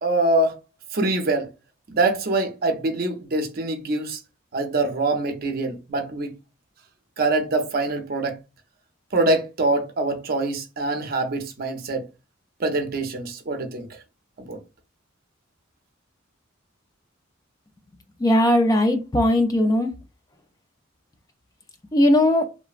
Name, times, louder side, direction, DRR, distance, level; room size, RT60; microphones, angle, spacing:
voice 1, 0.0-0.5 0.9-1.5 1.9-4.2 4.5-6.3 7.2-8.4 9.1-12.0 12.6-13.9 14.4-14.6, right 2 dB, 50° right, 0.6 m, -24 dB
voice 2, 18.2-19.9 21.9-22.5, left 1 dB, 20° left, 0.3 m, -18 dB
3.2 x 2.0 x 2.4 m
head